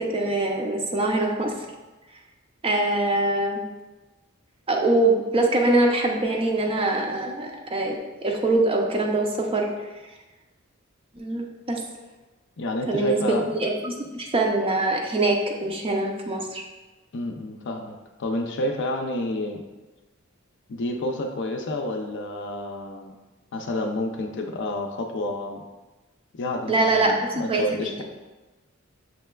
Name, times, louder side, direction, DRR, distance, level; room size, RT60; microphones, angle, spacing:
voice 1, 0.0-1.5 2.6-3.6 4.7-9.7 11.2-11.8 12.9-16.6 26.7-27.1 27.5-27.6, right 2 dB, 25° right, 1 dB, 0.5 m, -23 dB
voice 2, 12.6-13.4 17.1-19.6 20.7-23.1 23.5-25.6 26.3-28.0, left 1 dB, 60° left, 4 dB, 0.5 m, -29 dB
6.5 x 3.2 x 2.3 m, 1.2 s
head